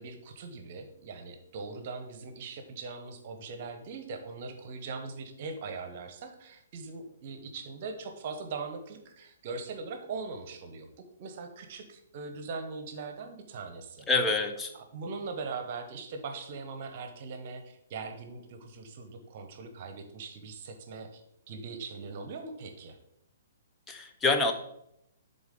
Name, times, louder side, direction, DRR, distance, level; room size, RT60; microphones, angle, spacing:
voice 1, 0.0-10.9 11.2-14.1 14.7-21.2 21.5-23.0, right 4 dB, 40° right, 6 dB, 1.0 m, -41 dB
voice 2, 14.1-14.7 23.9-24.5, left 3 dB, 10° left, 6 dB, 0.7 m, -26 dB
10.5 x 3.9 x 3.9 m, 0.77 s
figure-of-eight pair, 120°, 0 cm